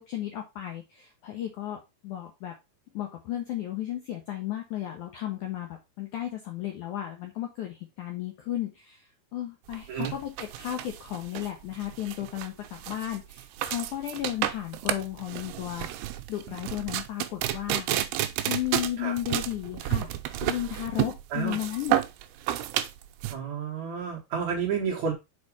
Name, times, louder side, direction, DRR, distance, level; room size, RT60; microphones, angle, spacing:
voice 1, 0.0-2.5 2.9-15.9 16.3-17.9 18.5-20.1 20.4-22.0, left 12 dB, 75° left, 3 dB, 1.8 m, -34 dB
sound 1, 9.7-23.3, right 13 dB, 80° right, 2.5 m, -31 dB
voice 2, 23.3-25.1, right 6 dB, 65° right, -2 dB, 1.9 m, -30 dB
5.9 x 4.5 x 4.8 m, 0.24 s
omnidirectional pair, 4.6 m